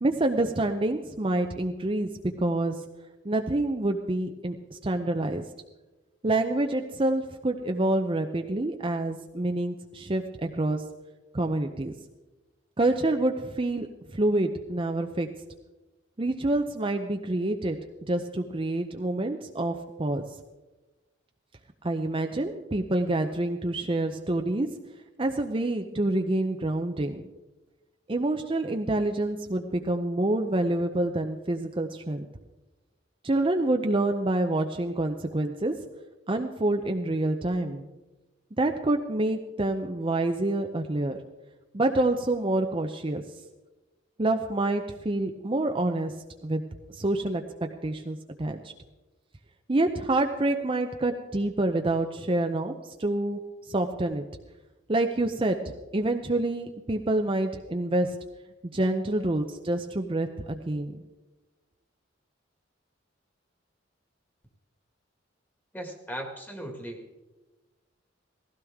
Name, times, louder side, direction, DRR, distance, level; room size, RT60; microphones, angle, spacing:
voice 1, 0.0-2.8 3.2-5.4 6.2-10.8 11.3-11.9 12.8-15.3 16.2-17.8 18.1-20.2 21.8-24.7 25.2-27.2 28.1-32.3 33.2-35.8 36.3-37.9 38.6-41.2 41.7-43.2 44.2-46.1 46.4-46.6 46.9-47.4 47.8-48.7 49.7-53.4 53.7-54.3 54.9-58.2 58.7-61.0, right 2 dB, 30° right, 5 dB, 0.6 m, -27 dB
voice 2, 65.7-67.2, right 1 dB, 10° left, 3 dB, 1.8 m, -38 dB
18.5 x 15.5 x 3.6 m, 1.1 s
head